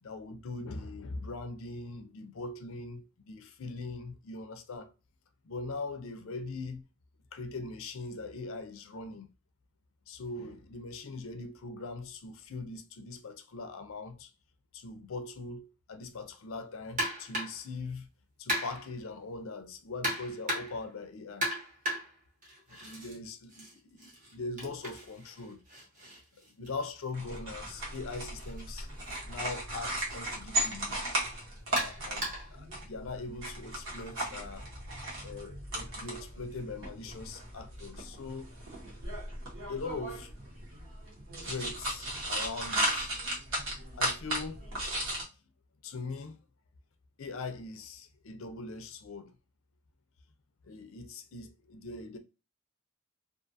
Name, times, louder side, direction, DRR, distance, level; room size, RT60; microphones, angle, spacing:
voice 1, 0.0-4.9 5.4-6.9 7.3-9.3 10.1-14.3 14.7-18.1 18.4-21.5 22.7-25.6 26.3-28.9 29.2-31.0 31.7-34.7 35.2-38.5 39.3-40.3 41.4-43.1 43.9-44.7 45.8-46.4 47.2-49.3 50.6-52.2, left 3 dB, 65° left, 0.5 m, -41 dB
sound 1, 17.0-17.7 18.5-19.0 20.0-20.9 21.4-23.2 23.5-27.4 28.4-28.6 29.1-29.2 30.1-30.2 31.8-32.6, equal, 40° right, 1.0 m, -36 dB
sound 2, 27.1-45.2, right 1 dB, 60° right, 1.1 m, -36 dB
2.5 x 2.4 x 2.6 m
head